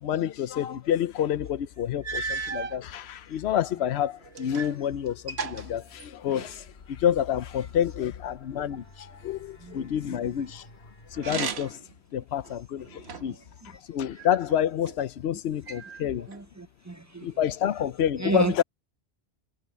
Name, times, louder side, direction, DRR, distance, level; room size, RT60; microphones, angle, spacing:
voice 1, 0.0-10.7 11.1-11.8 12.1-13.4 13.6-16.3 17.2-18.6, left 10 dB, 90° left, 0.9 m, -28 dB
sound 1, 1.5-1.6 2.0-2.8 3.6-4.8 5.1-6.6 11.1-11.9 12.4-13.4 14.2-15.0 15.7-16.4, right 5 dB, 85° right, 1.5 m, -36 dB
sound 2, 3.0-11.7, left 1 dB, 45° left, 2.5 m, -54 dB
voice 2, 9.6-10.2 13.3-13.8 15.3-15.4 15.8-17.9 18.2-18.6, right 3 dB, 25° right, 0.4 m, -34 dB
omnidirectional pair, 1.0 m